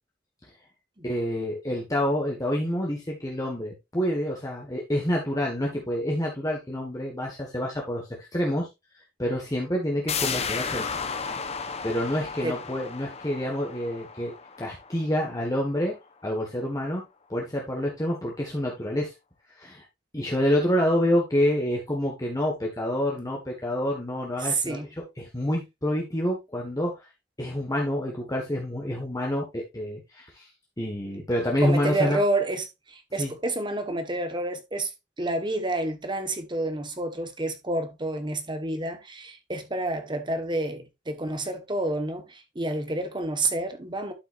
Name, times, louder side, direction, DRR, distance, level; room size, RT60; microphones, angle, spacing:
voice 1, 1.0-8.7 9.2-10.9 11.8-14.3 14.6-15.9 16.2-17.0 17.3-19.1 19.6-19.9 20.1-26.9 27.4-30.5 30.8-32.2 33.2-33.3, equal, 20° left, 1.7 m, -27 dB
sound 1, 10.1-15.6 15.9-16.0, left 5 dB, 35° left, 1.0 m, -33 dB
voice 2, 24.4-24.9 31.6-34.9 35.2-44.1, right 2 dB, 25° right, 1.5 m, -29 dB
12.0 x 6.1 x 2.6 m
head